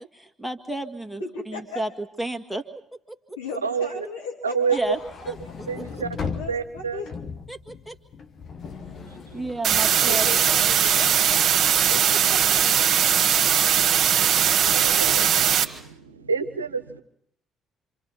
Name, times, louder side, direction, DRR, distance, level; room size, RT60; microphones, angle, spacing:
voice 1, 0.0-1.2 1.5-2.6 3.1-3.4 4.7-5.0 5.3-6.1 7.5-8.0 9.3-10.3, right 1 dB, ahead, 6 dB, 2.1 m, -32 dB
voice 2, 1.2-1.8 3.4-5.6 5.9-7.2 10.1-11.5 11.9-12.9, left 4 dB, 85° left, -2 dB, 2.7 m, -37 dB
voice 3, 4.4-4.8 5.7-6.1 6.5-7.0 14.5-15.2 15.6-15.9 16.2-17.0, right 5 dB, 90° right, 11 dB, 0.8 m, -27 dB
sound 1, 4.8-11.1, left 5 dB, 50° left, 1.6 m, -38 dB
sound 2, 9.6-15.6, right 9 dB, 50° right, 1.6 m, -20 dB
27.0 x 27.0 x 4.2 m, 0.69 s
figure-of-eight pair, 45°, 0 cm